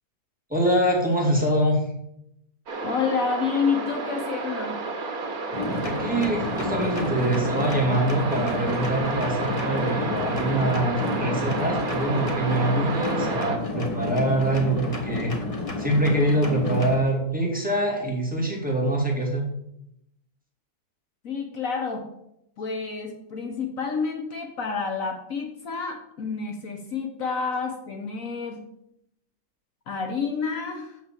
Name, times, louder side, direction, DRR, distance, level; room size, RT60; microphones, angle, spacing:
voice 1, 0.5-1.8 5.8-15.4 15.8-19.5, right 1 dB, 5° right, -2 dB, 2.3 m, -24 dB
sound 1, 2.7-13.6, right 3 dB, 70° right, 1.8 m, -31 dB
voice 2, 2.8-4.8 21.2-22.1 22.6-28.6 29.9-31.0, left 5 dB, 65° left, 4 dB, 1.3 m, -29 dB
sound 2, 5.5-17.0, left 2 dB, 25° left, 1.2 m, -31 dB
6.6 x 6.4 x 7.4 m, 0.79 s
omnidirectional pair, 1.6 m